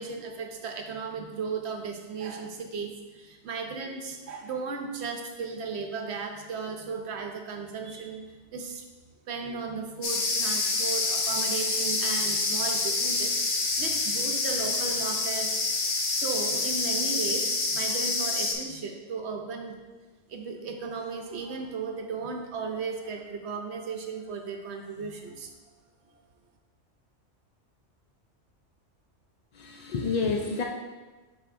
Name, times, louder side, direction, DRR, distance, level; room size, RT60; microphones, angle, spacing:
voice 1, 0.0-8.9 9.3-19.8 20.3-25.5, right 5 dB, 65° right, 3 dB, 0.9 m, -35 dB
sound 1, 10.0-18.5, left 3 dB, 75° left, 1.2 m, -27 dB
voice 2, 29.6-30.6, left 4 dB, 60° left, 0 dB, 0.4 m, -29 dB
9.9 x 4.0 x 2.5 m, 1.3 s
omnidirectional pair, 1.2 m